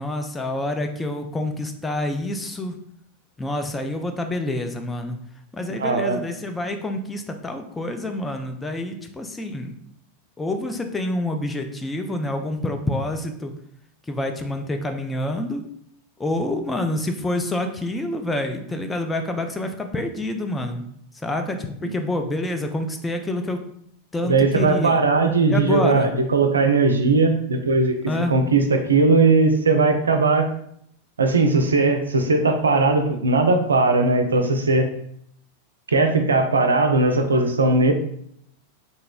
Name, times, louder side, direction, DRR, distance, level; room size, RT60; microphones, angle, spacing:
voice 1, 0.0-2.8 3.4-5.2 5.5-9.7 10.4-13.5 14.1-15.6 16.2-20.9 21.1-23.6 24.1-25.0 25.5-26.1 28.1-28.3, left 1 dB, 10° left, 5 dB, 0.3 m, -27 dB
voice 2, 5.8-6.2 21.8-21.9 24.2-28.0 28.3-30.5 31.2-34.9 35.9-37.9, right 3 dB, 70° right, 6 dB, 0.4 m, -19 dB
2.9 x 2.6 x 2.3 m, 0.69 s
figure-of-eight pair, 90°, 0 cm